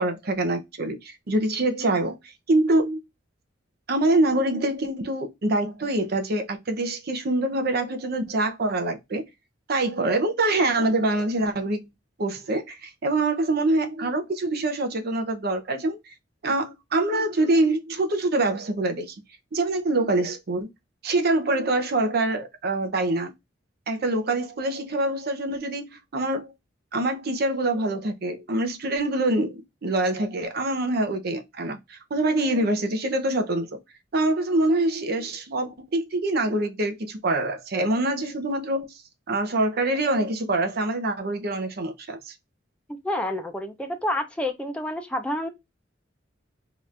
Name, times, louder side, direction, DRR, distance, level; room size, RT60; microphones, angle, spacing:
voice 1, 0.0-3.0 3.9-9.2 9.7-11.9 12.2-16.0 16.4-19.1 19.5-20.7 21.0-23.3 23.9-26.5 26.9-33.7 34.1-38.9 39.3-42.3, right 2 dB, 55° right, 0.6 m, -25 dB
voice 2, 42.9-45.5, left 1 dB, 5° left, 0.5 m, -29 dB
2.9 x 2.5 x 3.1 m
head